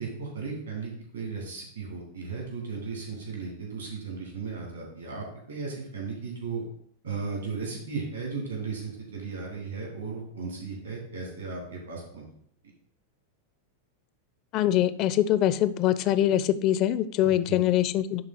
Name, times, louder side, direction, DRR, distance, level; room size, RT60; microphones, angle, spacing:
voice 1, 0.0-6.6 7.0-12.2 17.2-17.6, right 4 dB, 75° right, -1 dB, 3.1 m, -36 dB
voice 2, 14.5-18.2, left 12 dB, 40° left, 15 dB, 0.4 m, -23 dB
10.5 x 3.8 x 4.4 m, 0.66 s
figure-of-eight pair, 90°, 0 cm